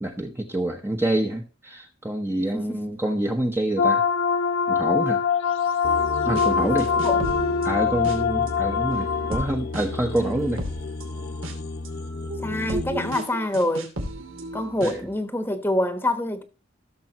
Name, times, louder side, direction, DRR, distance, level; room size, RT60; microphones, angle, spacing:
voice 1, 0.0-4.0 4.7-5.2 6.2-6.9 7.6-10.6 14.8-15.0, right 1 dB, 10° right, 0.9 m, -27 dB
sound 1, 3.8-9.5, left 6 dB, 75° left, 1.3 m, -23 dB
sound 2, 5.8-13.1, left 3 dB, 50° left, 0.7 m, -33 dB
sound 3, 6.4-6.5 6.8-8.5 8.9-15.1, right 1 dB, 85° right, 2.7 m, -35 dB
voice 2, 12.4-13.9 14.5-16.4, left 1 dB, 10° left, 1.1 m, -26 dB
16.0 x 6.9 x 2.9 m
head